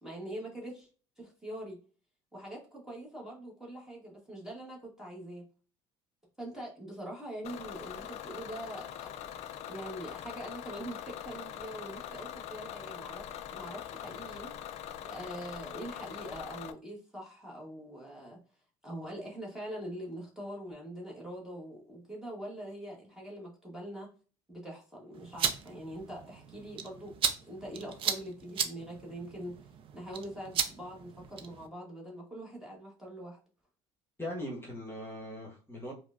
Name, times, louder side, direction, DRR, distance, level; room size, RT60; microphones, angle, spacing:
voice 1, 0.0-0.9 1.2-1.8 2.3-5.4 6.4-14.5 15.0-18.4 18.8-24.1 24.5-27.1 27.5-33.4, right 1 dB, 5° right, -4 dB, 1.1 m, -43 dB
Bus / Engine, 7.4-16.7, left 10 dB, 55° left, 0.4 m, -43 dB
sound 1, 25.1-31.7, right 7 dB, 45° right, 0.5 m, -36 dB
voice 2, 34.2-35.9, left 1 dB, 20° left, -1 dB, 1.2 m, -40 dB
4.7 x 2.1 x 2.4 m, 0.38 s
cardioid pair, 110°, 13 cm